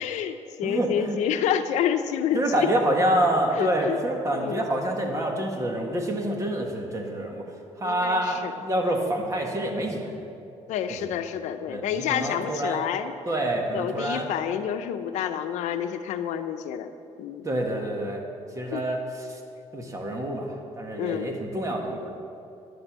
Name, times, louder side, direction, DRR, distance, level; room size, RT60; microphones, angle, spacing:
voice 1, 0.0-2.7 3.5-4.0 4.3-4.6 7.8-8.5 10.7-13.1 13.7-16.9 17.2-17.5 18.7-18.8 21.0-21.3, left 9 dB, 85° left, 8 dB, 0.7 m, -28 dB
voice 2, 0.6-1.2 2.3-7.5 7.8-10.2 10.9-11.1 11.7-12.8 13.3-14.3 17.5-18.2 18.6-19.4 19.7-20.5 20.8-22.1, right 1 dB, 25° right, 1 dB, 1.7 m, -27 dB
11.0 x 7.9 x 7.5 m, 2.6 s
cardioid pair, 120°, 12 cm